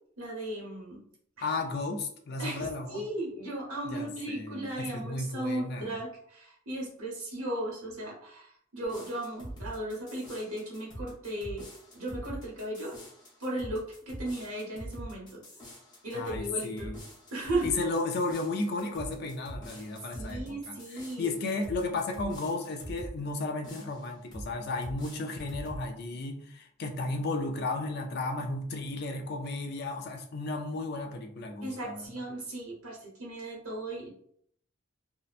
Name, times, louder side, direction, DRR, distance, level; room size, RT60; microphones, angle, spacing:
voice 1, 0.2-1.0 1.4-1.5 2.4-11.6 11.9-13.0 13.4-15.4 16.0-16.9 17.3-17.7 19.7-19.8 20.1-21.3 31.6-34.1, right 1 dB, 85° right, -3 dB, 1.0 m, -36 dB
voice 2, 1.4-3.0 3.9-6.0 16.1-17.0 17.6-20.8 21.2-32.0, left 3 dB, 50° left, 4 dB, 0.4 m, -34 dB
sound 1, 8.8-23.2 23.6-24.5 24.8-25.8, equal, 20° left, 0.8 m, -44 dB
2.8 x 2.1 x 2.4 m, 0.66 s
head